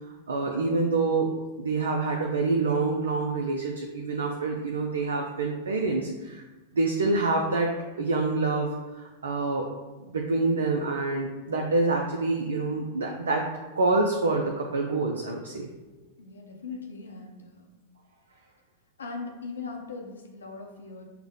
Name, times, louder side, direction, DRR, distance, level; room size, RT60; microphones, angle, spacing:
voice 1, 0.3-1.3 1.6-6.4 6.7-9.7 10.1-13.5 13.8-15.7, right 3 dB, 75° right, 2 dB, 0.4 m, -26 dB
voice 2, 16.2-17.7 19.0-21.0, left 4 dB, 80° left, 1 dB, 0.7 m, -39 dB
5.6 x 2.1 x 3.6 m, 1.2 s
figure-of-eight pair, 95°, 0 cm